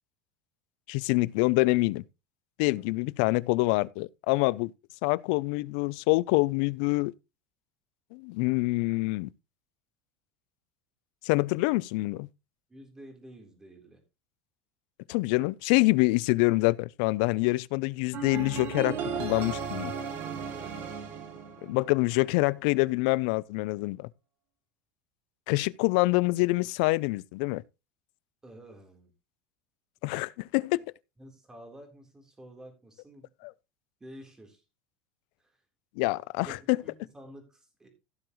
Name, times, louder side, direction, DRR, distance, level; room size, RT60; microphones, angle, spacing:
voice 1, 0.9-2.0 2.6-4.7 5.0-7.1 8.1-9.3 11.2-12.3 15.1-19.9 21.6-24.1 25.5-27.6 30.0-30.8 33.4-33.5 36.0-36.8, left 23 dB, 70° left, 0.5 m, -26 dB
voice 2, 12.7-14.0 20.2-20.8 28.4-29.1 30.1-30.3 31.2-33.3 34.0-34.6 35.4-35.6 36.1-37.9, right 1 dB, 10° right, 3.7 m, -50 dB
sound 1, 18.1-22.2, right 6 dB, 45° right, 2.5 m, -36 dB
15.5 x 7.0 x 3.1 m
supercardioid pair, 130°, 5 cm